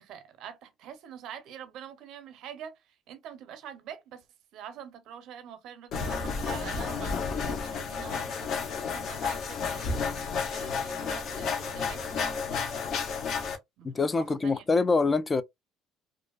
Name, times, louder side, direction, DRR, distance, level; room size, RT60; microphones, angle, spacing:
voice 1, 0.0-2.8 3.1-4.2 4.5-13.2 13.8-13.9 14.1-14.6, right 9 dB, 65° right, 0.7 m, -45 dB
sound 1, 5.9-13.6, left 5 dB, 55° left, 0.7 m, -32 dB
voice 2, 13.8-15.4, left 4 dB, 25° left, 0.3 m, -25 dB
2.4 x 2.3 x 2.3 m
supercardioid pair, 85°, 0 cm